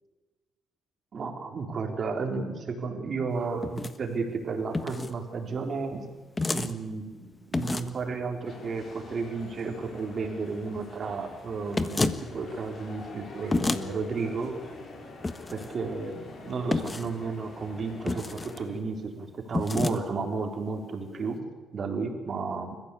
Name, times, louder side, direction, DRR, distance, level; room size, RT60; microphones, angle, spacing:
voice 1, 1.1-6.0 6.5-14.6 15.5-21.4 21.7-22.8, right 4 dB, 50° right, 4 dB, 4.0 m, -33 dB
sound 1, 3.6-4.0 4.7-5.1 6.4-6.7 7.5-8.0 11.7-12.2 13.5-13.8 15.2-15.7 16.7-17.1 18.1-18.6 19.5-20.0, left 3 dB, 20° left, 1.4 m, -29 dB
sound 2, 8.4-18.7, left 3 dB, 45° left, 5.5 m, -46 dB
28.5 x 15.5 x 8.6 m, 1.2 s
cardioid pair, 90°, 0 cm